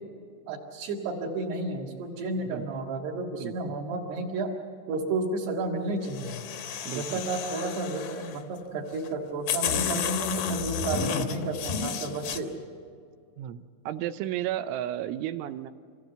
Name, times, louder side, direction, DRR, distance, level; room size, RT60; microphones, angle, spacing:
voice 1, 0.5-4.5 4.9-6.4 6.9-12.5, right 3 dB, 60° right, -5 dB, 3.6 m, -32 dB
voice 2, 3.4-3.7 6.9-7.2 13.4-15.7, right 12 dB, 80° right, 11 dB, 3.1 m, -33 dB
sound 1, 6.0-8.4 9.0-9.1 9.5-12.4, left 7 dB, 80° left, 1.9 m, -31 dB
25.0 x 17.5 x 8.0 m, 2.3 s
omnidirectional pair, 5.6 m